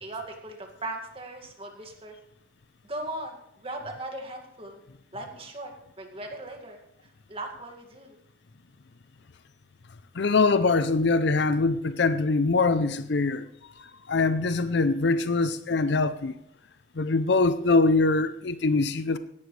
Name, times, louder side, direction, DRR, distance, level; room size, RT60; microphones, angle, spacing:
voice 1, 0.0-2.2 2.9-3.4 3.6-4.8 5.1-6.8 7.3-8.2, right 1 dB, 30° right, 2.0 m, -38 dB
voice 2, 10.1-13.5 13.8-16.3 17.0-19.2, left 3 dB, 55° left, 0.5 m, -23 dB
17.0 x 12.0 x 3.3 m
head